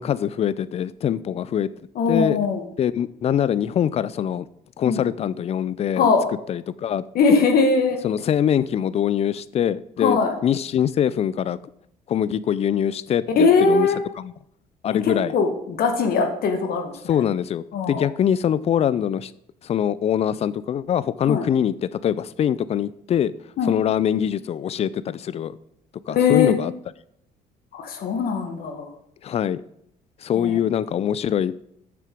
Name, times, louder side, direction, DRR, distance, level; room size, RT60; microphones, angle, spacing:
voice 1, 0.0-1.7 2.1-2.4 2.8-4.5 4.8-6.1 6.5-7.0 8.0-11.6 12.1-13.9 14.2-14.3 14.8-15.3 17.1-19.3 19.6-23.3 23.7-25.6 26.1-26.7 29.2-29.6 30.2-31.6, left 9 dB, 40° left, 0.4 m, -23 dB
voice 2, 1.9-2.6 4.8-5.1 6.0-6.3 7.1-8.0 10.0-10.3 13.4-14.0 15.0-17.2 17.7-18.1 21.2-21.4 23.6-23.7 26.1-26.6 27.7-28.9 30.3-30.6, left 5 dB, 60° left, 1.3 m, -20 dB
6.9 x 6.6 x 5.1 m
cardioid pair, 110°, 17 cm